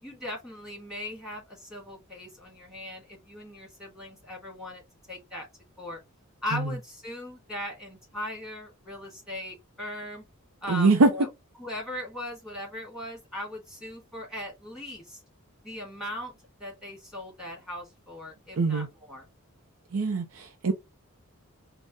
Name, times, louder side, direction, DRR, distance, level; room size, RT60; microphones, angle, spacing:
voice 1, 0.0-4.8 5.1-5.5 5.8-6.0 6.4-10.2 10.6-11.3 11.6-15.2 15.6-16.3 16.6-19.3, left 1 dB, ahead, 1.8 m, -39 dB
voice 2, 10.7-11.1 18.6-18.9 19.9-20.7, right 3 dB, 75° right, 0.6 m, -23 dB
3.9 x 2.2 x 3.6 m
head